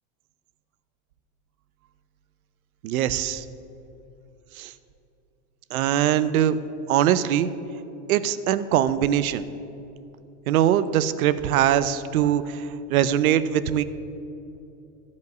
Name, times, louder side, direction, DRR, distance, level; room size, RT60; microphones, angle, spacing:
voice 1, 2.8-3.4 4.5-4.7 5.7-6.6 6.9-7.5 8.1-9.4 10.5-13.8, right 10 dB, 75° right, 14 dB, 0.8 m, -22 dB
14.5 x 5.4 x 9.3 m, 2.8 s
supercardioid pair, 175°, 43 cm